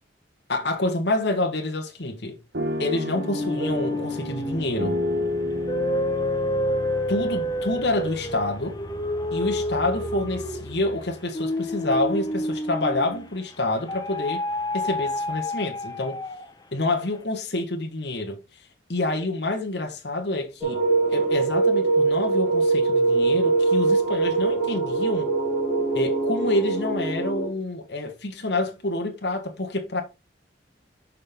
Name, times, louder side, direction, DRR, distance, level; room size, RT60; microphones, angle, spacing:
voice 1, 0.5-2.4 2.8-5.0 7.1-8.8 9.3-14.4 14.7-16.2 16.7-18.4 18.9-20.8 21.1-25.3 25.9-30.0, left 2 dB, 65° left, 1.4 m, -27 dB
sound 1, 2.5-8.6, left 1 dB, 55° right, 1.3 m, -31 dB
sound 2, 3.1-13.3 13.9-16.6, left 1 dB, 20° left, 0.7 m, -29 dB
sound 3, 20.6-27.5, right 3 dB, 5° right, 2.3 m, -22 dB
6.5 x 5.4 x 3.6 m
head